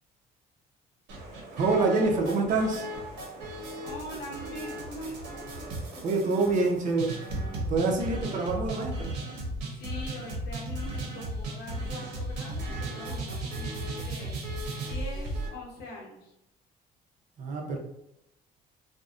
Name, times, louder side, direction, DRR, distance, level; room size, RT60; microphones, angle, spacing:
sound 1, 1.1-15.5, right 1 dB, 90° right, 0.6 m, -36 dB
voice 1, 1.5-2.9 6.0-7.2 7.7-9.1 17.4-17.8, right 3 dB, 50° right, 1 dB, 0.5 m, -26 dB
voice 2, 3.8-5.5 9.7-16.3, left 1 dB, 75° left, -2 dB, 0.8 m, -43 dB
2.5 x 2.0 x 2.4 m, 0.83 s
cardioid pair, 110°, 17 cm